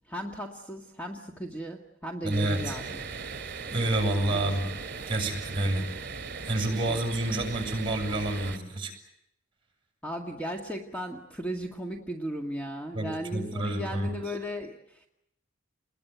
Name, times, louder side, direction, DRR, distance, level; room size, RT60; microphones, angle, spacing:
voice 1, 0.1-3.1 4.3-4.6 5.8-5.9 6.9-7.0 10.0-15.1, equal, 10° left, 1 dB, 1.8 m, -36 dB
voice 2, 2.2-2.7 3.7-4.7 5.1-5.9 6.5-8.9 12.9-14.1, right 1 dB, 25° right, 3 dB, 7.6 m, -28 dB
sound 1, 2.3-8.6, right 4 dB, 55° right, 2.7 m, -38 dB
29.0 x 21.5 x 9.3 m, 0.79 s
head